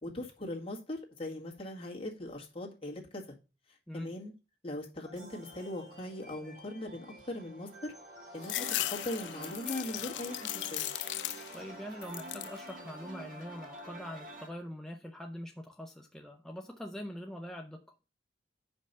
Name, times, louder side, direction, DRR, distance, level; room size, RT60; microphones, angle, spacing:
voice 1, 0.0-3.4 3.7-4.3 4.6-7.9 8.3-10.9, left 1 dB, 35° left, 1.8 m, -40 dB
sound 1, 5.0-14.5, right 1 dB, 55° right, 3.2 m, -48 dB
sound 2, 8.4-11.7 12.0-12.6 13.1-13.8, left 15 dB, 85° left, 0.3 m, -37 dB
voice 2, 11.5-17.9, equal, 5° left, 0.5 m, -43 dB
6.7 x 5.3 x 5.4 m
head